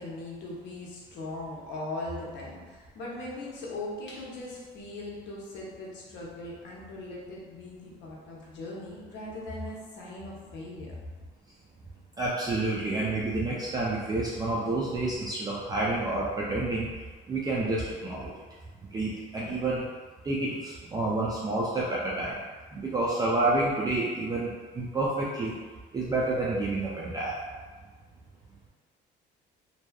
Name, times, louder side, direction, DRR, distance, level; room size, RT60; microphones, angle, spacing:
voice 1, 0.0-11.0, left 2 dB, 65° left, -4 dB, 0.7 m, -39 dB
voice 2, 12.2-16.9 17.3-18.3 18.9-19.8 20.2-22.3 22.7-24.5 24.7-25.5 25.9-27.4, right 2 dB, 20° right, -6 dB, 0.3 m, -29 dB
2.6 x 2.3 x 2.2 m, 1.4 s
cardioid pair, 130°, 19 cm